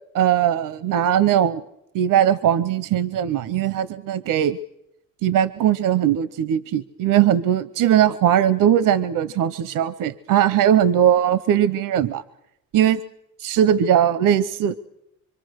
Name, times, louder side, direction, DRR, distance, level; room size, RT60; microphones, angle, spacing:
voice 1, 0.1-1.6 1.9-4.6 5.2-12.2 12.7-13.0 13.4-14.8, right 10 dB, 70° right, 15 dB, 0.8 m, -19 dB
25.5 x 25.5 x 6.5 m, 0.87 s
cardioid pair, 150°, 34 cm